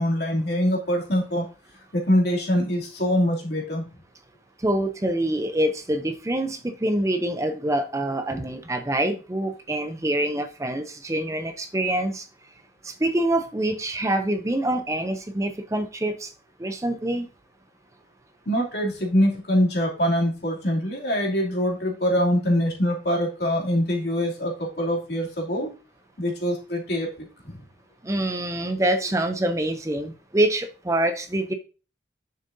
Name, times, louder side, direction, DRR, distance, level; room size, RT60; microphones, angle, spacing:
voice 1, 0.0-1.5 1.9-3.8 18.5-25.7 26.2-27.6, equal, 55° left, -1 dB, 2.7 m, -24 dB
voice 2, 4.6-12.3 12.8-16.3 16.6-17.3 28.0-31.5, right 1 dB, 15° right, 8 dB, 0.5 m, -25 dB
10.0 x 6.5 x 2.7 m, 0.34 s
head